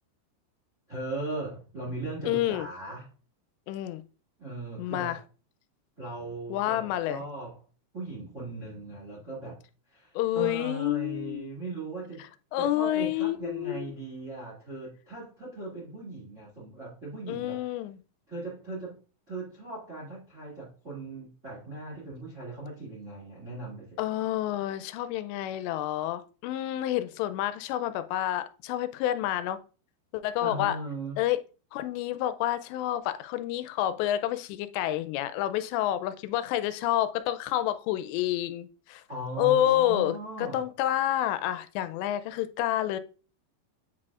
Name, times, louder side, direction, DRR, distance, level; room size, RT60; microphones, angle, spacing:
voice 1, 0.9-3.1 4.4-5.2 6.0-7.6 7.9-9.6 9.9-12.2 12.6-17.6 18.3-19.0 19.3-24.0 30.4-31.2 39.1-40.6, right 2 dB, 35° right, 1.1 m, -38 dB
voice 2, 2.3-2.7 3.7-4.0 4.8-5.2 6.5-7.2 10.2-11.5 12.5-13.9 17.3-18.0 24.0-29.6 30.1-30.8 31.2-31.4 31.7-39.0 39.4-43.0, left 13 dB, 90° left, 2.8 m, -29 dB
8.7 x 4.8 x 2.4 m
omnidirectional pair, 4.9 m